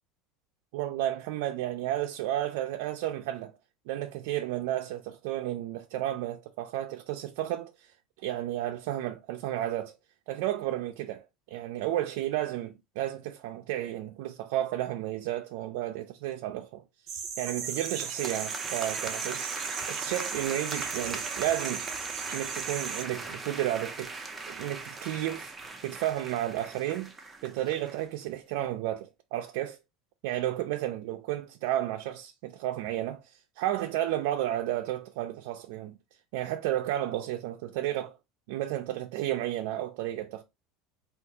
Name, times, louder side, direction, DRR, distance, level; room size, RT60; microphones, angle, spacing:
voice 1, 0.7-3.5 3.9-9.9 10.3-19.5 19.9-21.9 22.3-24.1 24.5-25.5 25.8-27.1 27.4-29.8 30.2-36.0 36.3-38.2 38.5-40.4, right 13 dB, 70° right, 0.3 m, -32 dB
sound 1, 17.1-23.0, right 6 dB, 40° right, 0.8 m, -37 dB
sound 2, 17.7-28.1, right 3 dB, 10° right, 0.5 m, -39 dB
3.5 x 2.3 x 2.7 m
cardioid pair, 160°, 0 cm